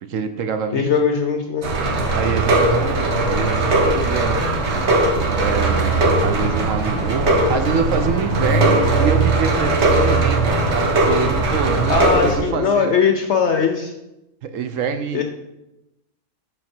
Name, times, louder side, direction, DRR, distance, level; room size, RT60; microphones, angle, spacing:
voice 1, 0.0-0.9 2.1-4.4 5.4-12.9 14.4-15.2, right 6 dB, 65° right, 8 dB, 0.9 m, -25 dB
voice 2, 0.7-1.7 11.9-13.9 15.1-15.2, left 6 dB, 65° left, 5 dB, 0.7 m, -19 dB
sound 1, 1.6-12.4, right 2 dB, 50° right, 1.2 m, -19 dB
6.5 x 6.0 x 4.3 m, 0.92 s
omnidirectional pair, 1.7 m